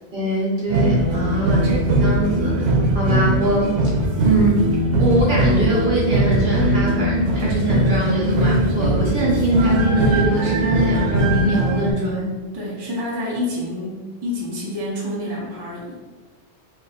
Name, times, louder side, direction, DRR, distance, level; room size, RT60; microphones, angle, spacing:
voice 1, 0.1-3.8 4.2-4.6 5.0-12.3, right 1 dB, 50° right, -5 dB, 0.9 m, -22 dB
sound 1, 0.7-11.9, right 1 dB, 85° right, 0.9 m, -20 dB
voice 2, 12.5-16.0, left 1 dB, 30° right, -5 dB, 0.5 m, -28 dB
2.5 x 2.3 x 4.0 m, 1.4 s
omnidirectional pair, 1.2 m